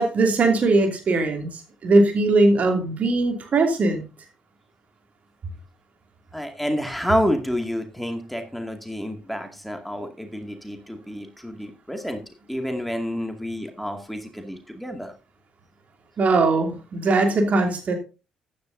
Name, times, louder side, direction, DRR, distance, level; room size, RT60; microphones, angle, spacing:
voice 1, 0.0-4.0 16.2-17.9, right 2 dB, 45° right, 4 dB, 2.8 m, -20 dB
voice 2, 6.3-12.2 12.5-15.1, equal, ahead, 4 dB, 2.2 m, -29 dB
14.5 x 10.5 x 2.7 m, 0.31 s
figure-of-eight pair, 45°, 3 cm